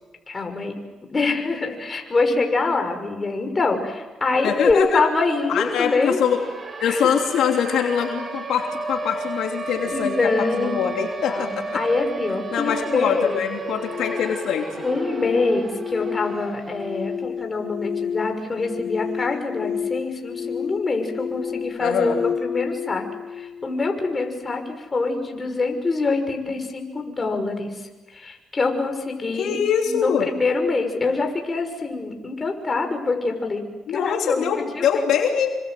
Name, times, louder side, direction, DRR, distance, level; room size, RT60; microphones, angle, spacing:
voice 1, 0.3-0.7 1.1-6.2 6.9-7.0 9.9-10.8 11.3-13.4 14.8-23.0 23.4-24.6 24.9-27.7 28.1-29.6 29.9-33.6 33.9-34.5 34.7-34.8, left 3 dB, 30° left, 4 dB, 6.0 m, -24 dB
voice 2, 4.4-5.0 5.5-6.4 6.8-11.6 12.5-14.7 21.8-22.2 29.3-30.3 33.9-35.5, left 8 dB, 80° left, 2 dB, 3.1 m, -23 dB
Siren, 4.7-4.8 5.1-17.1, right 3 dB, 35° right, 3.6 m, -34 dB
sound 1, 13.6-24.6, left 7 dB, 55° left, 1.1 m, -31 dB
27.5 x 25.5 x 7.9 m, 1.2 s
cardioid pair, 90°, 0 cm